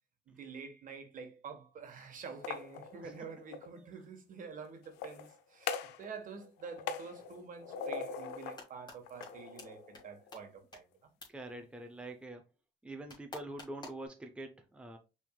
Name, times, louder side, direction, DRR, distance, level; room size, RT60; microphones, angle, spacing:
voice 1, 0.3-11.1, right 5 dB, 50° right, 1.3 m, -48 dB
sound 1, 2.2-3.7 4.8-6.1 6.3-8.7 9.0-10.4, left 6 dB, 90° left, 0.6 m, -42 dB
sound 2, 8.3-9.0 9.2-9.3 9.6-9.7 9.9-10.0 10.3-10.4 10.7-10.8 11.2-11.3 13.1-14.1, left 2 dB, 25° left, 2.1 m, -47 dB
voice 2, 11.3-12.4 12.8-15.0, right 2 dB, 5° right, 0.7 m, -45 dB
5.7 x 3.6 x 2.3 m
cardioid pair, 110°, 17 cm